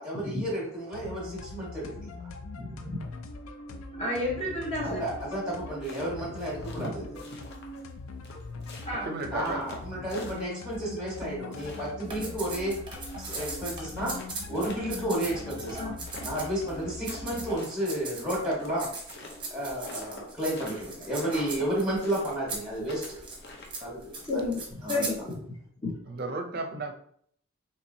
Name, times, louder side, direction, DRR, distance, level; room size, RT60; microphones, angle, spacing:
voice 1, 0.0-2.1 4.8-7.2 9.3-12.8 13.2-14.1 14.5-15.9 16.2-18.9 19.5-23.2 23.8-24.1 24.8-25.0, right 1 dB, 5° right, -6 dB, 1.4 m, -32 dB
sound 1, 0.9-17.5, left 3 dB, 85° left, 0.4 m, -42 dB
voice 2, 2.6-3.0 4.0-5.0 6.8-6.9 8.8-9.1 10.8-11.0 15.8-15.9 24.3-24.6 24.9-25.4 25.8-26.0, left 2 dB, 30° left, -4 dB, 1.0 m, -31 dB
sound 2, 5.6-7.9 8.2-10.8 11.1-13.4 13.7-13.8 13.9-17.3 17.6-20.9 21.1-21.7 22.0-24.0, left 2 dB, 55° left, 0.7 m, -46 dB
voice 3, 9.0-9.7 26.1-26.9, right 2 dB, 45° right, 5 dB, 0.5 m, -34 dB
sound 3, 12.1-16.7 17.0-18.5 18.8-25.3, right 3 dB, 25° right, 0.9 m, -40 dB
4.4 x 3.0 x 2.7 m, 0.64 s
head